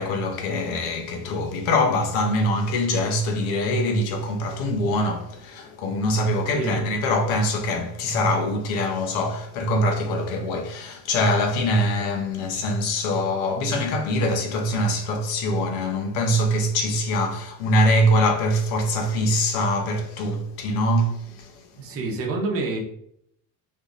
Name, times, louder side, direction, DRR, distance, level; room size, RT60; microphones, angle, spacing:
voice 1, 0.0-22.0, left 1 dB, 90° left, 0.8 m, -23 dB
voice 2, 21.8-22.8, right 3 dB, 35° right, 0.7 m, -27 dB
3.5 x 2.6 x 2.5 m
cardioid pair, 170°, 41 cm